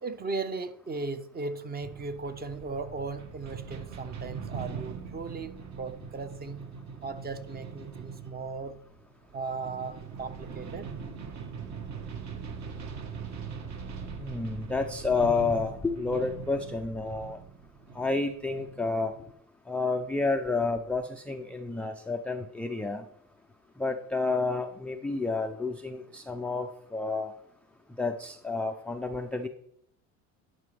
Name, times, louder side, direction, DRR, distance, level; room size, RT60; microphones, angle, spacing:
voice 1, 0.0-6.6 7.0-8.8 9.3-10.9 13.8-14.0, right 4 dB, 25° right, 11 dB, 0.8 m, -37 dB
sound 1, 1.8-19.3, right 5 dB, 45° right, 1.3 m, -41 dB
voice 2, 14.2-17.4 18.0-19.1 19.7-23.0 23.8-27.3 28.0-29.5, left 3 dB, 5° left, 4 dB, 0.3 m, -30 dB
11.0 x 5.1 x 3.3 m, 0.68 s
supercardioid pair, 90°, 39 cm